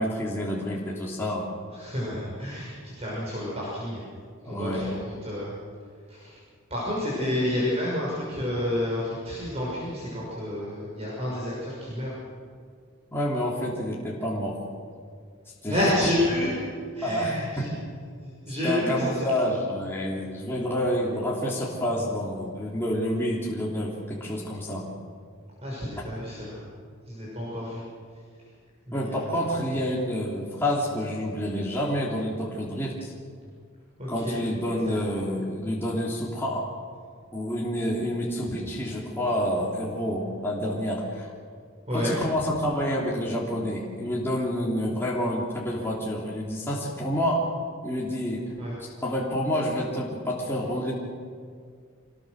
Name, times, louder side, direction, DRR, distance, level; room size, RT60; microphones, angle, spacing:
voice 1, 0.0-1.5 4.4-5.0 7.2-7.6 13.1-14.6 15.6-15.8 17.0-17.8 18.6-24.9 28.9-33.1 34.1-36.7 37.3-41.3 41.9-47.5 47.8-48.4 48.8-50.9, equal, 10° left, -5 dB, 3.1 m, -28 dB
voice 2, 1.7-4.0 4.4-5.5 6.1-6.4 6.7-12.1 15.7-16.6 16.9-17.7 18.2-19.3 25.6-26.6 27.1-27.8 28.9-29.4 34.0-34.4 34.8-35.0 41.9-42.1 48.6-48.7, left 1 dB, 30° right, -6 dB, 6.0 m, -30 dB
26.0 x 20.5 x 6.5 m, 2.1 s
head